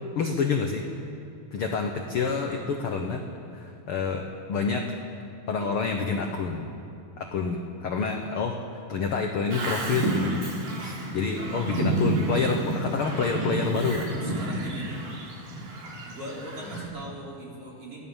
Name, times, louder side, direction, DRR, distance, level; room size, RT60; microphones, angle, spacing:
voice 1, 0.1-0.8 1.5-3.2 3.5-4.8 5.5-6.7 7.2-8.6 8.9-10.3 10.8-14.1, left 5 dB, 70° left, 3 dB, 1.3 m, -28 dB
Bird vocalization bird call bird song, 9.5-16.8, right 1 dB, 65° right, 5.2 m, -30 dB
voice 2, 11.2-11.7 14.2-15.1 16.0-18.0, right 1 dB, 40° right, -4 dB, 5.0 m, -40 dB
24.0 x 15.0 x 7.3 m, 2.5 s
omnidirectional pair, 4.2 m